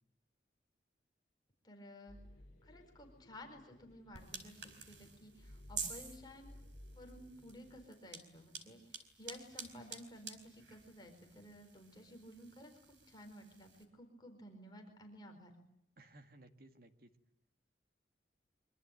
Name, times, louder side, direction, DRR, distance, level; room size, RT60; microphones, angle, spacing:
voice 1, 1.6-2.2 2.6-6.6 6.9-15.5, equal, 20° left, 3 dB, 4.5 m, -54 dB
sound 1, 2.1-7.9, left 1 dB, 45° left, 4.2 m, -58 dB
sound 2, 4.1-13.8, right 5 dB, 75° right, 4.4 m, -50 dB
voice 2, 16.0-17.1, right 1 dB, 50° right, 7 dB, 2.1 m, -59 dB
25.5 x 25.0 x 9.2 m, 0.77 s
head